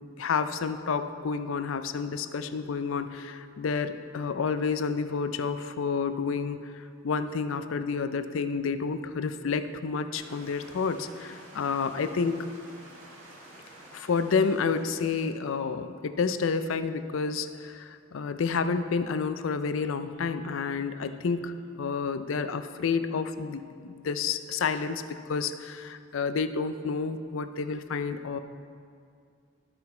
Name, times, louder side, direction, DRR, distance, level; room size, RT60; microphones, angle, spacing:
voice 1, 0.2-12.5 13.9-28.4, left 5 dB, 75° left, 10 dB, 0.4 m, -30 dB
sound 1, 10.1-15.5, right 1 dB, 90° right, 1.7 m, -50 dB
13.0 x 5.8 x 4.3 m, 2.3 s
head